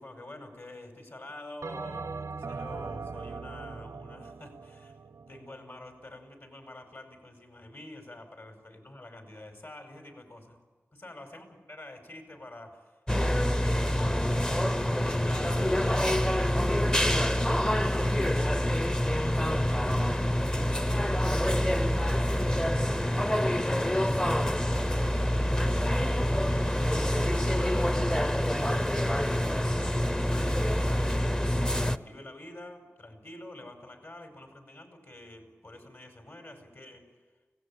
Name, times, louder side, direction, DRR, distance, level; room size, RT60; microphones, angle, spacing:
voice 1, 0.0-5.0 5.3-10.6 10.9-13.0 13.4-14.8 15.0-16.5 17.5-26.7 27.3-29.0 30.1-37.1, left 1 dB, 60° left, 5 dB, 5.4 m, -47 dB
Bell, 1.6-6.2, right 4 dB, 85° right, 0.7 m, -40 dB
sound 1, 13.1-32.0, equal, 15° left, 0.7 m, -26 dB
25.5 x 17.5 x 8.9 m, 1.3 s
wide cardioid pair, 65°, 5 cm